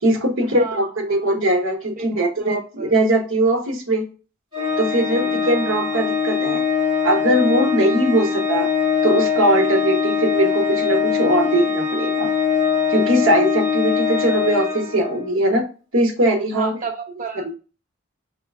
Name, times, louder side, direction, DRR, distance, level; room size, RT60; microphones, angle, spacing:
voice 1, 0.0-4.0 4.8-6.6 7.0-8.7 9.0-12.3 12.9-15.7 15.9-16.8 17.4-17.5, right 1 dB, 80° right, 4 dB, 1.1 m, -20 dB
voice 2, 0.5-1.3 2.0-2.1 2.4-2.9 5.0-5.5 16.5-17.5, right 5 dB, 40° right, 3 dB, 0.6 m, -32 dB
Organ, 4.5-15.3, left 6 dB, 25° right, 1.9 m, -22 dB
4.7 x 3.2 x 3.5 m, 0.35 s
head